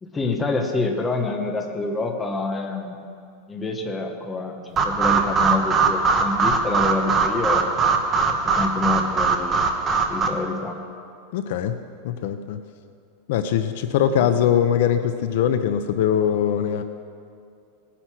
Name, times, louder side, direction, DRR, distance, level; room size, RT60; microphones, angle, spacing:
voice 1, 0.0-3.0 3.5-7.6 8.2-9.8 10.1-10.8 14.2-14.3, left 3 dB, 10° left, 2 dB, 1.1 m, -27 dB
sound 1, 4.8-10.3, right 4 dB, 15° right, 0.9 m, -21 dB
voice 2, 11.3-11.7 12.0-12.6 13.3-16.8, left 9 dB, 55° left, 9 dB, 0.7 m, -21 dB
18.0 x 10.0 x 6.2 m, 2.4 s
supercardioid pair, 175°, 0 cm